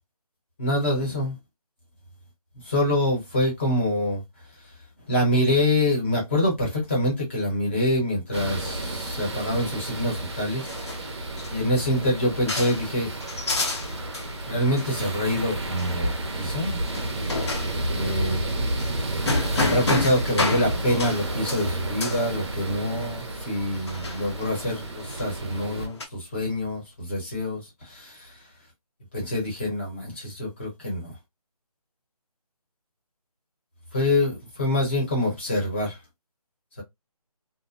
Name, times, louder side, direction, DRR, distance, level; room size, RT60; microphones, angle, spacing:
voice 1, 0.6-1.4 2.6-4.2 5.1-10.7 11.5-13.1 14.5-16.8 17.9-18.4 18.7-18.8 19.5-28.3 29.1-31.1 33.9-36.0, left 1 dB, 20° left, 0.9 m, -25 dB
sound 1, 8.3-25.9, right 1 dB, 45° right, 0.6 m, -31 dB
sound 2, 10.1-26.1, left 3 dB, 45° left, 0.7 m, -33 dB
2.5 x 2.1 x 2.5 m
figure-of-eight pair, 170°, 20 cm